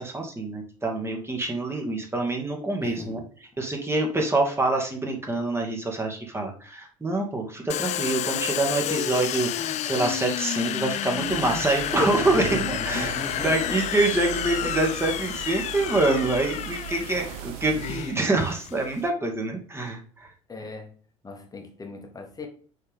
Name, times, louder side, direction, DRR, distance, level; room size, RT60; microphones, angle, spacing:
voice 1, 0.0-3.2 3.6-13.2 13.4-20.3, right 2 dB, 15° right, 1 dB, 2.1 m, -26 dB
voice 2, 2.8-3.2 12.3-13.9 14.6-14.7 20.5-20.9 21.2-22.5, left 3 dB, 20° left, 2 dB, 1.9 m, -37 dB
Domestic sounds home sounds, 7.7-19.1, left 12 dB, 45° left, 0.4 m, -31 dB
sound 1, 11.1-18.2, right 10 dB, 65° right, 1.2 m, -38 dB
6.7 x 4.5 x 3.6 m, 0.43 s
hypercardioid pair, 65°, 17 cm